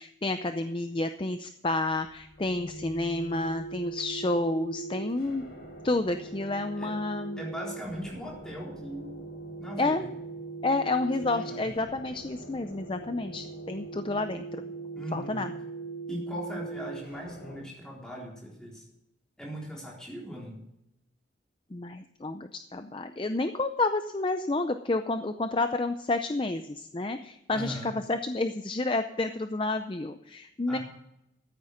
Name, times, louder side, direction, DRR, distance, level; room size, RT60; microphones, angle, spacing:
voice 1, 0.0-5.5 5.8-7.4 9.8-10.1 10.6-14.6 15.1-15.5 21.7-30.8, left 2 dB, 25° left, 8 dB, 0.5 m, -30 dB
sound 1, 2.0-17.6, right 3 dB, 65° left, 5.1 m, -41 dB
voice 2, 7.4-9.3 9.6-10.1 11.2-11.7 14.9-15.5 16.1-18.9 19.4-20.6 27.5-28.0 30.7-30.8, equal, 5° left, -4 dB, 3.9 m, -39 dB
14.0 x 8.7 x 6.4 m, 0.84 s
head